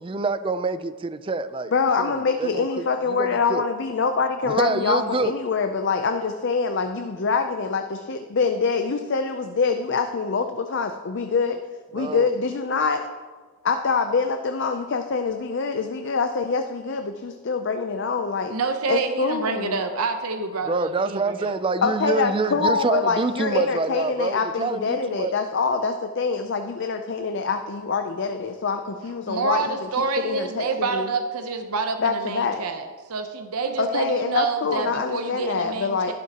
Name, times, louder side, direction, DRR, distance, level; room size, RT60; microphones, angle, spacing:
voice 1, 0.0-1.7 2.0-2.8 3.1-3.6 4.5-5.3 11.9-12.3 20.7-25.3, right 3 dB, 25° right, 12 dB, 0.4 m, -26 dB
voice 2, 1.7-11.6 11.9-13.0 13.6-18.5 18.9-19.8 21.8-29.9 30.2-30.7 30.9-31.1 32.0-32.6 33.8-36.1, left 4 dB, 55° left, 6 dB, 0.5 m, -25 dB
voice 3, 18.5-21.5 29.3-36.1, right 4 dB, 85° right, 6 dB, 0.8 m, -28 dB
12.0 x 11.0 x 2.9 m, 1.5 s
head